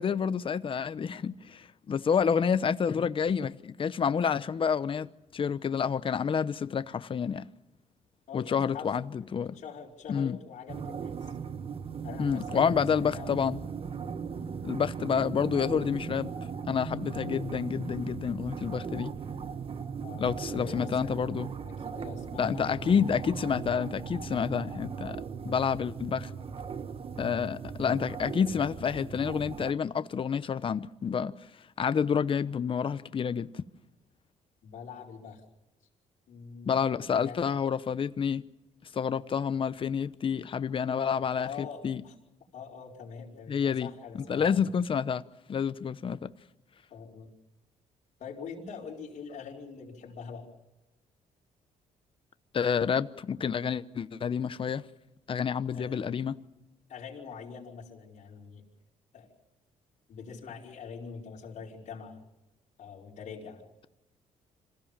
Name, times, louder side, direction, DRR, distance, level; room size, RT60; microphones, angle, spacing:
voice 1, 0.0-7.5 8.3-9.6 10.1-10.4 12.2-13.6 14.6-16.3 16.7-19.1 20.2-21.5 22.4-26.3 27.2-31.3 31.8-33.5 36.7-38.4 38.9-42.0 43.5-43.9 44.1-45.2 45.5-46.3 52.5-54.8 55.3-56.4, left 7 dB, 40° left, 0.9 m, -29 dB
voice 2, 8.3-9.3 9.5-11.3 12.0-13.3 15.2-15.3 20.0-21.2 21.8-22.7 34.6-35.4 36.3-37.5 41.4-42.1 42.5-44.6 46.9-47.3 48.2-50.5 55.7-56.0 56.9-58.6 59.1-59.3 60.1-62.2 62.8-63.6, left 6 dB, 65° left, 5.2 m, -44 dB
sound 1, 10.7-29.7, right 6 dB, 45° right, 1.3 m, -38 dB
26.5 x 16.0 x 7.4 m
cardioid pair, 95°, 14 cm